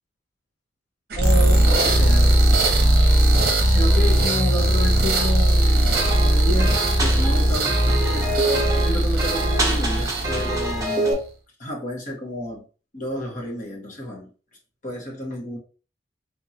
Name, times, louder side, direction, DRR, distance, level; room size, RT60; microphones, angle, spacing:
voice 1, 1.1-2.4 3.7-8.3 8.7-11.2 11.6-12.6 12.9-14.3 14.8-15.6, equal, 40° left, -2 dB, 1.2 m, -31 dB
sound 1, 1.1-11.1, right 1 dB, 55° right, 0.8 m, -19 dB
sound 2, 5.9-11.1, right 2 dB, 20° right, 0.8 m, -26 dB
3.5 x 3.0 x 2.7 m, 0.36 s
head